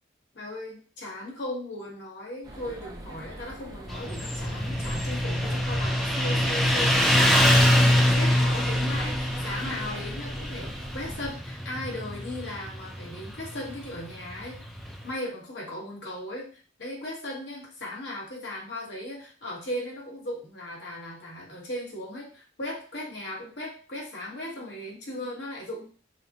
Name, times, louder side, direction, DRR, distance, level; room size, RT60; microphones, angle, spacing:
voice 1, 0.3-14.6 15.0-25.9, left 1 dB, 60° left, -4 dB, 1.4 m, -37 dB
sound 1, 2.4-11.3, right 1 dB, 20° right, 0.8 m, -41 dB
Motorcycle, 3.9-15.0, left 1 dB, ahead, 0.3 m, -24 dB
4.8 x 2.1 x 2.9 m, 0.40 s
head